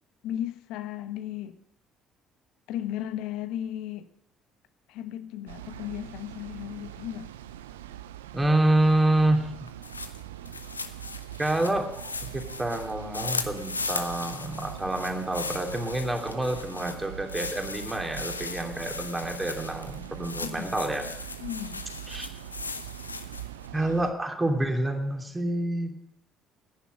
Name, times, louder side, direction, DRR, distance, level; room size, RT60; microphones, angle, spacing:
voice 1, 0.2-1.6 2.7-4.1 4.9-7.3 20.4-20.7 21.4-21.9, left 11 dB, 65° left, 0.9 m, -35 dB
sound 1, 5.5-24.1, right 12 dB, 80° right, 0.5 m, -42 dB
voice 2, 8.3-9.6 11.4-11.9 12.2-21.1 22.1-22.3 23.7-26.0, right 1 dB, 15° right, 2.9 m, -27 dB
sound 2, 9.7-23.7, left 4 dB, 90° left, 0.6 m, -38 dB
15.0 x 10.0 x 6.5 m
figure-of-eight pair, 50°, 0 cm